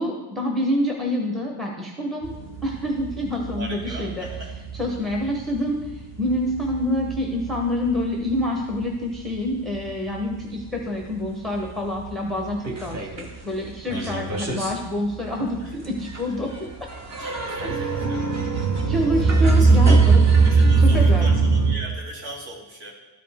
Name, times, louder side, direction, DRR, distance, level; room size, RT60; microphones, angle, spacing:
voice 1, 0.0-2.3 2.6-4.3 4.7-16.7 17.6-17.9 18.9-20.2 20.8-21.3, left 1 dB, ahead, 0 dB, 0.6 m, -27 dB
sound 1, 2.2-8.9 9.2-10.3 10.8-10.9 11.2-11.3 11.5-13.4 13.7-21.7, right 4 dB, 35° right, 0.9 m, -21 dB
voice 2, 3.5-4.5 13.9-14.4 15.6-15.8 17.2-18.2 19.6-20.0 20.4-22.9, right 1 dB, 60° right, -3 dB, 2.9 m, -38 dB
13.0 x 5.0 x 3.4 m, 1.2 s
cardioid pair, 175°, 50 cm